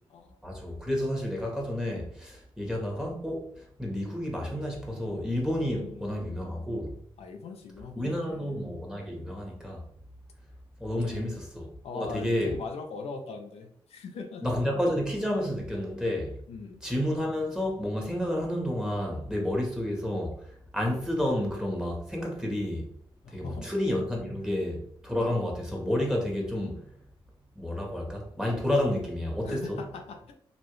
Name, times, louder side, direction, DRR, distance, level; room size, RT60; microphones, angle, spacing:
voice 1, 0.4-6.9 7.9-9.8 10.8-11.7 11.9-12.5 14.4-16.3 16.8-20.5 20.7-22.9 23.3-26.8 27.5-29.8, left 1 dB, 5° right, 1.3 m, -30 dB
voice 2, 5.7-6.5 7.2-8.5 11.1-11.3 11.8-14.5 16.5-16.8 23.2-23.7 24.4-24.5 29.4-30.3, left 4 dB, 90° left, 0.5 m, -41 dB
3.0 x 2.6 x 3.1 m
cardioid pair, 55°, 10 cm